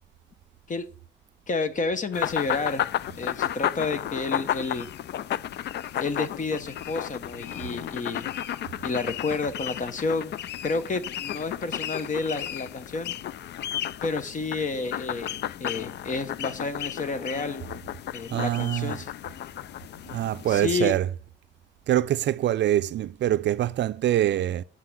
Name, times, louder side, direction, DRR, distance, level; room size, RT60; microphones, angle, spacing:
voice 1, 1.5-2.9 3.1-4.9 6.0-8.3 8.8-10.3 10.6-13.1 14.0-17.6 18.1-19.1 20.5-21.0, left 3 dB, 40° left, 1.2 m, -30 dB
sound 1, 2.1-20.7, left 11 dB, 60° left, 0.4 m, -33 dB
voice 2, 18.3-18.9 20.1-21.0 21.9-24.6, right 12 dB, 65° right, 0.5 m, -24 dB
8.5 x 5.8 x 6.2 m
cardioid pair, 90°, 20 cm